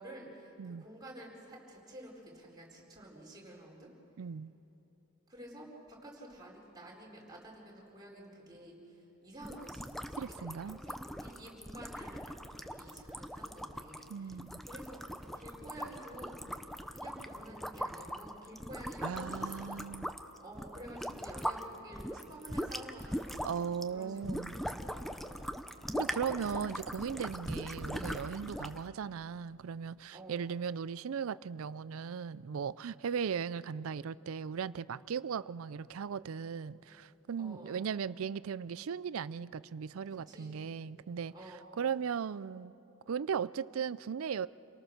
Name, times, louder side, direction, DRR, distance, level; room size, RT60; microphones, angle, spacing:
voice 1, 0.0-3.9 5.3-14.4 14.6-19.9 20.4-23.4 23.9-25.5 26.3-26.4 27.2-27.5 30.1-30.4 37.4-37.8 40.3-40.7 41.3-41.7, right 1 dB, 20° right, -3 dB, 4.3 m, -51 dB
voice 2, 4.2-4.5 10.2-10.8 14.1-14.6 19.0-20.1 23.4-24.6 25.9-42.7 43.1-44.5, right 6 dB, 75° right, 18 dB, 0.4 m, -37 dB
sound 1, 9.4-21.6 21.9-28.8, equal, ahead, 0.7 m, -40 dB
28.5 x 18.5 x 6.5 m, 2.9 s
head